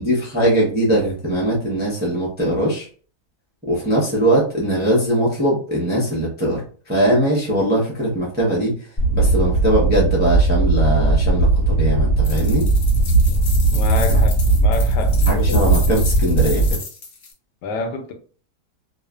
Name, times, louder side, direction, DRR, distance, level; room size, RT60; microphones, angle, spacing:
voice 1, 0.0-2.9 3.7-8.7 9.1-12.7 15.3-16.6, right 1 dB, 15° right, 0.3 m, -20 dB
sound 1, 9.0-16.7, right 2 dB, 25° left, 1.0 m, -17 dB
sound 2, 12.2-17.3, left 4 dB, 60° left, 0.8 m, -34 dB
voice 2, 13.7-15.6 17.6-18.1, left 3 dB, 90° left, 1.2 m, -28 dB
3.1 x 2.1 x 2.3 m
omnidirectional pair, 1.8 m